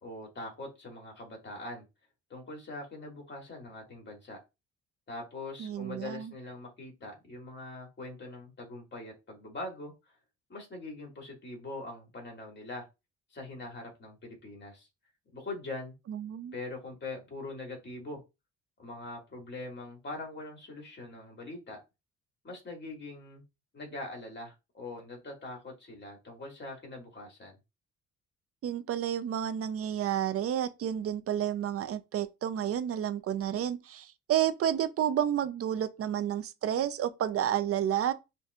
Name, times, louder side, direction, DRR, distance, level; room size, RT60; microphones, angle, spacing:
voice 1, 0.0-1.8 2.3-4.4 5.1-9.9 10.5-12.9 13.3-14.9 15.3-15.9 16.5-18.2 18.8-21.8 22.4-23.4 23.7-27.6, left 2 dB, 35° left, 2.1 m, -42 dB
voice 2, 5.6-6.3 16.1-16.6 28.6-38.1, right 10 dB, 50° right, 0.5 m, -30 dB
5.5 x 2.7 x 2.4 m
cardioid pair, 90°, 30 cm